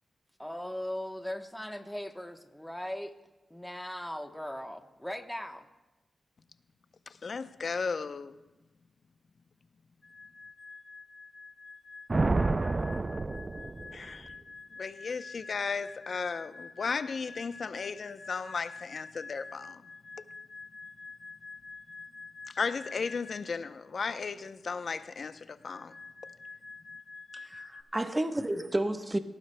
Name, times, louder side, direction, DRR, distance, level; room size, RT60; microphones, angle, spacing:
voice 1, 0.4-3.2 3.5-5.7, left 1 dB, 5° left, 1.0 m, -39 dB
voice 2, 7.2-8.3 13.9-14.3 14.8-19.7 22.6-25.9, left 5 dB, 65° left, 0.6 m, -35 dB
sound 1, 10.0-23.7 25.6-27.8, left 4 dB, 45° left, 3.1 m, -48 dB
Thunder, 12.1-14.3, right 3 dB, 35° right, 0.4 m, -29 dB
voice 3, 27.3-29.2, right 1 dB, 20° right, 1.0 m, -31 dB
21.0 x 18.0 x 2.2 m
cardioid pair, 55°, 0 cm